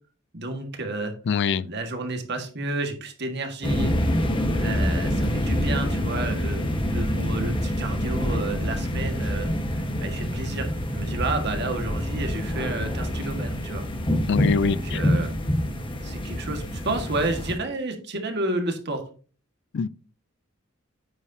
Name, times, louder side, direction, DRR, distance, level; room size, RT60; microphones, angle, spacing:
voice 1, 0.3-1.1 1.6-4.0 4.6-6.6 6.9-13.9 14.5-15.4 16.0-19.0, right 2 dB, 55° right, 1.8 m, -31 dB
voice 2, 1.3-1.7 14.3-15.0 19.7-19.9, left 6 dB, 60° left, 0.4 m, -23 dB
sound 1, 3.6-17.5, equal, 25° left, 1.4 m, -26 dB
9.5 x 8.4 x 2.8 m
head